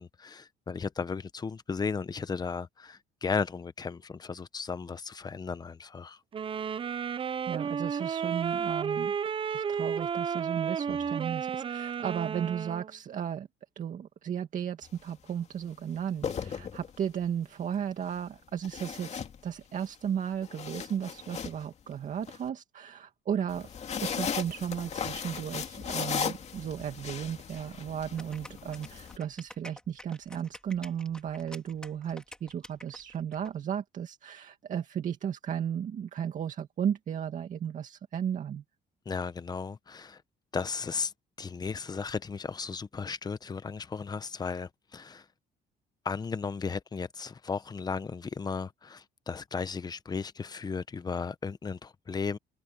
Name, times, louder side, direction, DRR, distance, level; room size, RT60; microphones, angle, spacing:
voice 1, 0.0-6.2 16.5-16.7 39.1-40.2 40.5-41.1 41.4-45.3 46.0-52.4, left 5 dB, 25° left, 0.9 m, -35 dB
sound 1, 6.3-12.9, right 7 dB, 30° right, 0.6 m, -32 dB
voice 2, 7.1-9.1 9.5-13.5 13.8-23.7 24.0-38.6, right 8 dB, 50° right, 2.1 m, -35 dB
sound 2, 14.8-15.1 16.0-17.2 18.6-19.9 20.3-22.4 23.5-29.2, left 7 dB, 40° left, 2.4 m, -37 dB
sound 3, 28.2-33.5, left 1 dB, 5° left, 3.8 m, -49 dB
cardioid pair, 110°, 17 cm